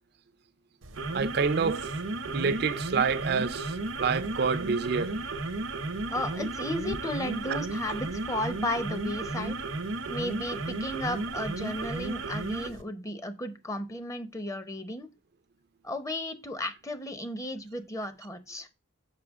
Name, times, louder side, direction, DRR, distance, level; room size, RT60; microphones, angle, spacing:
sound 1, 0.8-12.8, right 2 dB, 85° right, 0.8 m, -34 dB
voice 1, 1.1-1.9 2.3-5.2 7.5-7.6, right 5 dB, 55° right, 0.5 m, -28 dB
voice 2, 6.1-9.6 10.1-15.1 15.8-18.7, left 1 dB, 15° left, 0.7 m, -34 dB
6.7 x 5.6 x 3.6 m
head